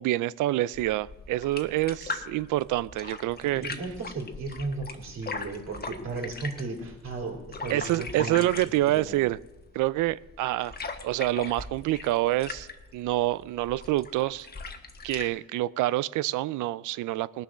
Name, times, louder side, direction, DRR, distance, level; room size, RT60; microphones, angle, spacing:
voice 1, 0.0-3.6 7.7-9.4 9.7-10.8 11.0-14.5 15.0-17.4, right 16 dB, 85° right, 19 dB, 0.5 m, -27 dB
sound 1, 0.7-15.3, left 4 dB, 30° left, 1.3 m, -40 dB
voice 2, 3.4-9.2, right 3 dB, 60° right, 1 dB, 3.5 m, -35 dB
19.0 x 6.9 x 6.2 m, 1.0 s
cardioid pair, 90°, 30 cm